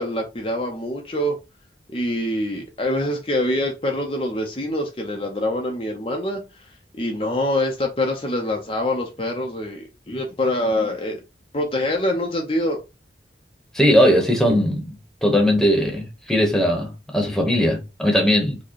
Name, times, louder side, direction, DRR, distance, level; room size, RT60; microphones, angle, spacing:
voice 1, 0.0-1.4 1.9-6.7 7.0-11.2 11.5-12.8, left 1 dB, 30° left, 0.6 m, -25 dB
voice 2, 13.7-15.0 15.2-18.6, equal, 5° left, 1.0 m, -19 dB
4.8 x 2.2 x 4.5 m
head